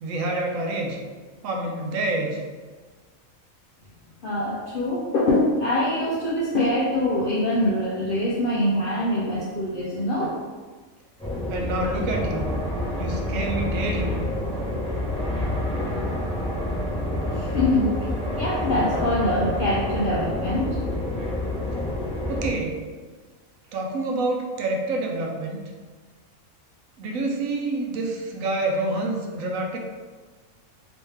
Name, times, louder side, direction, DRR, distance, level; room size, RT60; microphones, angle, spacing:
voice 1, 0.0-1.0 1.4-2.4 11.5-12.5 13.0-14.2 22.3-22.8 23.7-25.6 27.0-29.8, right 2 dB, 75° right, 1 dB, 1.0 m, -27 dB
voice 2, 4.2-10.3 17.3-20.8, left 1 dB, 65° left, -6 dB, 0.5 m, -24 dB
sound 1, 11.2-22.5, left 1 dB, 5° left, 0.6 m, -28 dB
3.2 x 3.1 x 3.2 m, 1.4 s
omnidirectional pair, 1.5 m